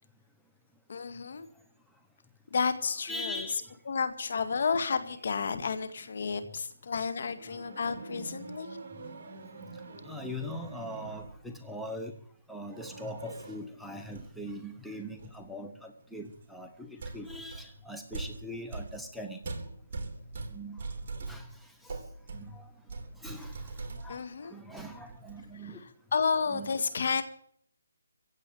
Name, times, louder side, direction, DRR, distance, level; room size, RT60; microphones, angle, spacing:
voice 1, 0.9-1.5 2.5-3.4 3.9-8.7 24.1-24.5 26.1-27.2, left 5 dB, 55° left, 11 dB, 2.0 m, -31 dB
voice 2, 3.1-3.7 10.0-12.1 12.5-19.4 20.5-20.8 21.3-21.5 21.8-22.0 22.3-22.7 23.2-23.6 24.0-25.8 26.5-26.8, left 1 dB, ahead, 2 dB, 0.9 m, -41 dB
sound 1, 7.3-11.5 12.7-13.7 14.0-14.6 15.2-15.5 16.3-16.4 17.0-24.3 24.7-25.5, right 3 dB, 40° right, 3.6 m, -43 dB
16.0 x 8.2 x 9.2 m, 0.64 s
figure-of-eight pair, 155°, 0 cm